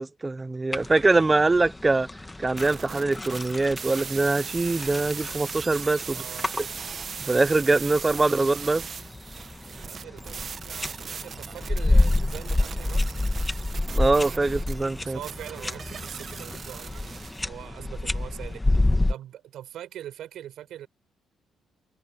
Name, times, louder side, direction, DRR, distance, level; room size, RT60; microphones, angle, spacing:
voice 1, 0.0-2.1 2.4-6.2 7.3-8.8 13.9-15.2, right 3 dB, 20° right, 0.9 m, -23 dB
sound 1, 0.7-19.1, left 2 dB, 15° left, 2.0 m, -29 dB
sound 2, 2.6-17.4, right 6 dB, 50° right, 1.7 m, -39 dB
voice 2, 6.0-6.5 9.7-13.1 15.0-20.9, right 11 dB, 75° right, 6.9 m, -42 dB
cardioid pair, 90°, 0 cm